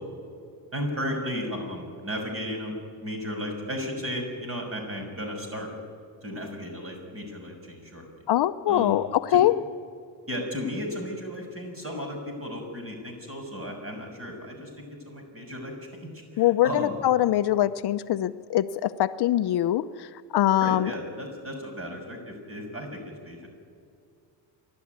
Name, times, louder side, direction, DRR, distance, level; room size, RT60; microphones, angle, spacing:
voice 1, 0.7-2.7 3.0-5.7 6.2-8.0 8.7-9.0 10.3-15.7 16.1-16.9 20.6-23.5, equal, 30° right, 2 dB, 6.5 m, -34 dB
voice 2, 8.3-9.6 16.4-20.9, left 12 dB, 60° left, 12 dB, 0.7 m, -23 dB
28.0 x 12.5 x 9.6 m, 2.3 s
cardioid pair, 110°, 45 cm